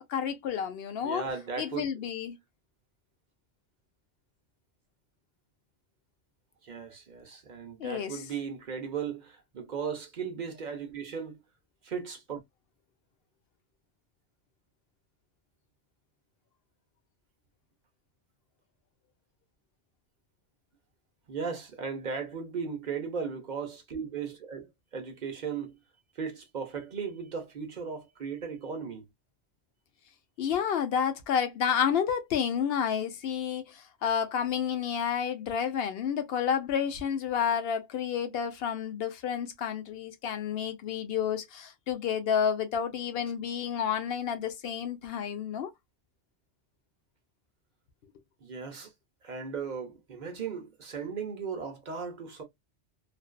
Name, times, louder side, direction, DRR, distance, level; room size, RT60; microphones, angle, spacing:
voice 1, 0.1-1.2 1.6-2.4 7.8-8.2 30.4-45.7, left 8 dB, 65° left, 0.7 m, -30 dB
voice 2, 1.0-1.9 6.6-11.4 11.8-12.4 21.3-25.8 26.1-29.1 48.4-48.9 49.2-52.4, right 6 dB, 50° right, 0.6 m, -36 dB
2.5 x 2.3 x 2.2 m
omnidirectional pair, 1.2 m